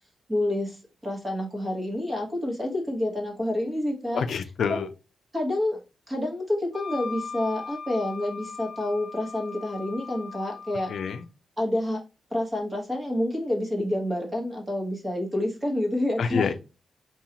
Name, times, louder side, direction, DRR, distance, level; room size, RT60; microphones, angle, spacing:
voice 1, 0.3-4.2 4.7-4.9 5.3-5.8 6.1-10.9 11.6-12.0 12.3-16.5, left 1 dB, 15° right, 0 dB, 1.1 m, -28 dB
voice 2, 4.1-4.9 10.9-11.3 16.2-16.5, left 6 dB, 65° left, 10 dB, 0.4 m, -27 dB
Wind instrument woodwind instrument, 6.7-11.2, left 5 dB, 20° left, 0.8 m, -39 dB
5.3 x 2.4 x 2.9 m, 0.30 s
wide cardioid pair, 180°, 0 cm